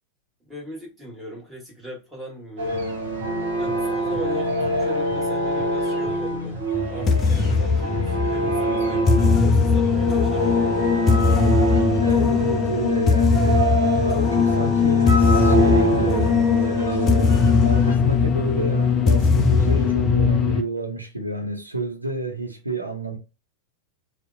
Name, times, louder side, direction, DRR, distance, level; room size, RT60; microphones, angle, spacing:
voice 1, 0.4-2.8 3.6-6.6 6.9-7.2 7.6-10.8, right 1 dB, 10° right, 1.3 m, -38 dB
sound 1, 2.6-17.9, right 1 dB, 65° right, 1.0 m, -25 dB
sound 2, 6.7-20.6, left 5 dB, 25° left, 0.3 m, -20 dB
voice 2, 12.0-23.2, right 1 dB, 85° right, 0.5 m, -29 dB
2.6 x 2.1 x 2.5 m
figure-of-eight pair, 90°, 0 cm